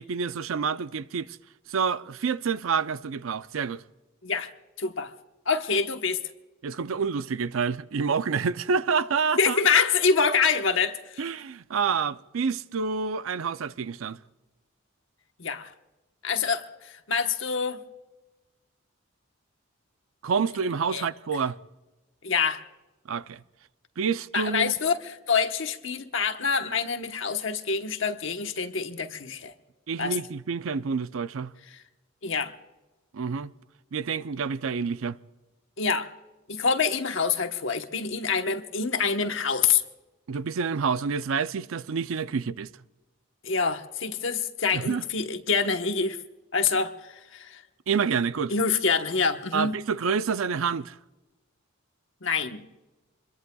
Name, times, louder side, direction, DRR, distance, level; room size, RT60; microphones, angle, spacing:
voice 1, 0.0-1.4 1.7-3.8 6.6-9.6 11.2-14.2 20.2-21.6 23.1-23.4 24.0-24.7 29.9-31.5 33.1-33.5 33.9-35.2 40.3-42.7 44.7-45.0 47.9-48.5 49.5-51.0, right 5 dB, 75° right, 0.5 m, -28 dB
voice 2, 4.8-5.1 5.5-6.2 9.4-11.2 15.4-15.7 16.2-17.8 20.9-21.1 22.2-22.6 24.3-25.0 25.3-29.5 30.0-30.2 32.2-32.5 35.8-36.1 36.5-39.8 43.4-46.2 46.5-46.9 47.3-47.6 48.5-49.7 52.2-52.6, left 5 dB, 65° left, 1.1 m, -26 dB
26.5 x 22.0 x 2.3 m
head